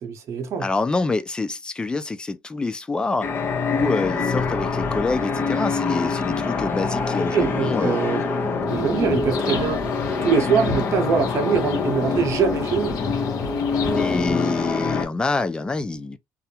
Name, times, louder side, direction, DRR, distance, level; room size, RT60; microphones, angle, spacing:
voice 1, 0.0-0.7 7.3-8.2 8.7-9.8 10.2-12.9, right 6 dB, 50° right, 0.8 m, -23 dB
voice 2, 0.6-3.3 3.7-8.0 14.0-16.2, left 3 dB, 15° left, 0.3 m, -26 dB
sound 1, 3.2-15.1, left 4 dB, 35° left, 0.7 m, -25 dB
sound 2, 8.7-15.0, left 6 dB, 80° left, 0.6 m, -35 dB
2.4 x 2.0 x 2.8 m
cardioid pair, 130°, 6 cm